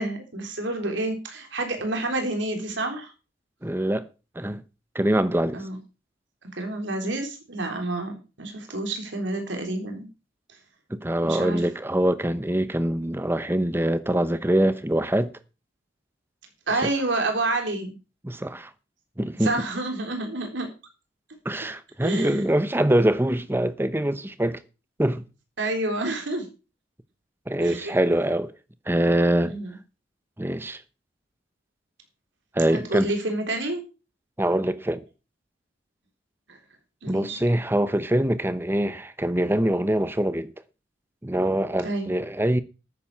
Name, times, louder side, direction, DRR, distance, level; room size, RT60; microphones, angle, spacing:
voice 1, 0.0-3.1 5.5-5.8 6.6-10.1 11.2-11.7 16.7-17.9 19.3-20.7 22.0-22.4 25.6-26.5 27.6-27.9 29.5-29.7 32.7-33.8 36.5-36.6 37.0-37.4 41.8-42.1, right 2 dB, 75° right, 3.6 m, -29 dB
voice 2, 3.6-4.1 4.4-4.6 4.9-5.6 10.9-15.3 18.2-18.7 19.2-19.5 21.4-24.6 25.0-25.2 27.5-28.5 28.9-29.5 30.4-30.8 32.5-33.1 34.4-35.0 37.1-40.5 41.2-42.6, right 1 dB, 10° right, 0.8 m, -24 dB
13.0 x 9.5 x 4.7 m
head